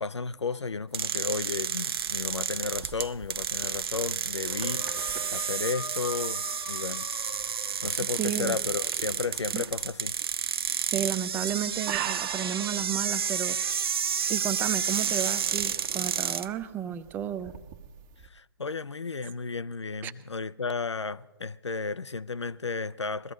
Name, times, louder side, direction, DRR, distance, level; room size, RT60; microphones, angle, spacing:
voice 1, 0.0-7.1 7.8-10.2 18.3-23.3, left 4 dB, 90° left, 0.5 m, -33 dB
sound 1, 0.9-16.5, right 7 dB, 60° right, 0.7 m, -31 dB
sound 2, 2.0-18.3, right 10 dB, 35° right, 1.4 m, -45 dB
sound 3, 4.4-8.5, left 6 dB, 40° left, 0.6 m, -43 dB
voice 2, 8.2-8.6 9.5-9.6 10.9-13.6 14.3-17.6 20.0-20.1, right 9 dB, 15° right, 0.4 m, -32 dB
21.5 x 14.5 x 3.1 m
figure-of-eight pair, 135°, 14 cm